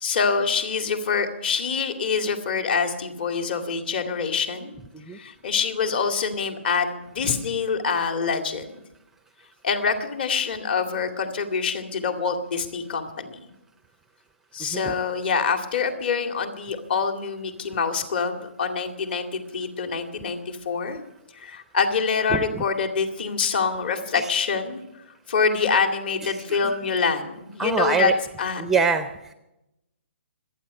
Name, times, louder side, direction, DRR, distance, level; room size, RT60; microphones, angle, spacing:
voice 1, 0.0-4.7 5.1-8.8 9.6-13.4 14.5-21.0 21.3-24.8 25.3-28.1 28.4-28.6, left 5 dB, 50° left, 5 dB, 2.2 m, -25 dB
voice 2, 22.3-22.6 24.1-24.3 26.2-26.8 27.6-28.2 28.6-29.3, right 5 dB, 5° right, 9 dB, 0.5 m, -25 dB
25.5 x 9.3 x 5.4 m, 0.89 s
hypercardioid pair, 165°, 7 cm